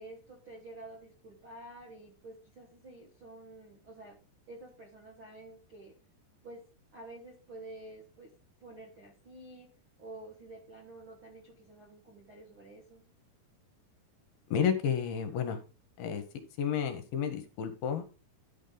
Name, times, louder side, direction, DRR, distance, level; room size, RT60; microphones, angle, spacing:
voice 1, 0.0-4.2 4.5-5.9 6.4-6.6 6.9-8.3 8.6-9.7 10.0-13.0, right 2 dB, 60° right, -1 dB, 1.3 m, -49 dB
voice 2, 14.5-15.6 16.0-16.2 16.6-18.1, left 8 dB, 75° left, 8 dB, 2.6 m, -31 dB
11.0 x 5.4 x 3.8 m, 0.33 s
omnidirectional pair, 4.6 m